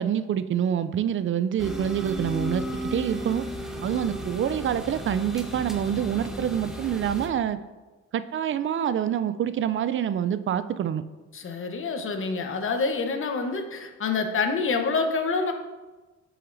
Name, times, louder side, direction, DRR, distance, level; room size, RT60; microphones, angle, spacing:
voice 1, 0.0-2.7 2.9-3.4 3.8-7.6 8.1-11.0, right 9 dB, 45° right, 13 dB, 0.4 m, -26 dB
sound 1, 1.6-7.3, equal, ahead, 1.0 m, -34 dB
voice 2, 11.3-15.5, left 4 dB, 45° left, 6 dB, 0.9 m, -27 dB
8.2 x 5.7 x 2.6 m, 1.2 s
cardioid pair, 90°, 30 cm